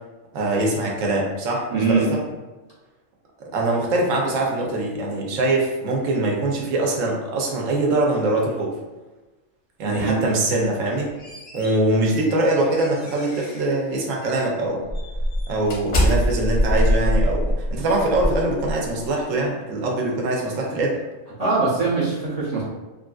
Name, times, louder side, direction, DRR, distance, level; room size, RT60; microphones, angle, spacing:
voice 1, 0.3-2.2 3.4-8.7 9.8-11.1 11.5-14.9 15.5-21.0, right 2 dB, 80° right, -1 dB, 1.0 m, -23 dB
voice 2, 1.7-2.1 9.8-10.2 21.4-22.6, right 4 dB, 45° right, -8 dB, 0.5 m, -22 dB
sound 1, 10.8-13.7 14.2-14.4 14.9-19.1, equal, 45° left, 0.5 m, -24 dB
3.2 x 2.5 x 2.3 m, 1.2 s
omnidirectional pair, 1.3 m